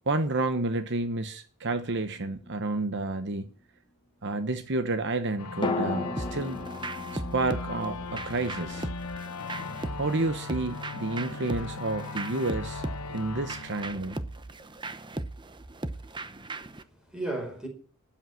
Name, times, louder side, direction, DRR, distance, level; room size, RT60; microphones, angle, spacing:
voice 1, 0.1-3.4 4.2-6.6 7.1-8.9 9.9-12.8 13.1-14.2, right 2 dB, 50° right, 1.0 m, -30 dB
sound 1, 2.0-3.2 5.6-9.6 9.8-9.9, left 3 dB, 20° left, 1.6 m, -36 dB
sound 2, 5.4-14.7, left 4 dB, 85° left, 1.2 m, -39 dB
sound 3, 6.2-16.8, right 2 dB, 20° right, 0.8 m, -38 dB
voice 2, 15.9-17.7, right 2 dB, 5° right, 4.7 m, -38 dB
12.5 x 8.8 x 7.5 m
head